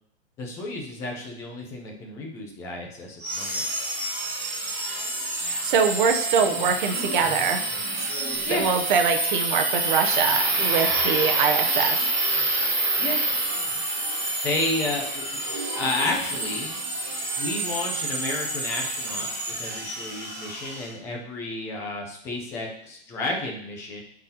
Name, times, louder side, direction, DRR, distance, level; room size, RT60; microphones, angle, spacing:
voice 1, 0.4-3.6 8.4-8.6 13.0-13.2 14.4-15.4 15.7-16.7 17.4-19.3 19.6-24.0, left 2 dB, 10° left, 0 dB, 0.4 m, -31 dB
sound 1, 3.2-20.9, right 2 dB, 25° right, 2.4 m, -27 dB
voice 2, 5.5-7.6 8.5-12.0, right 6 dB, 50° right, 5 dB, 0.7 m, -23 dB
10.0 x 4.0 x 2.8 m, 0.71 s
hypercardioid pair, 165°, 32 cm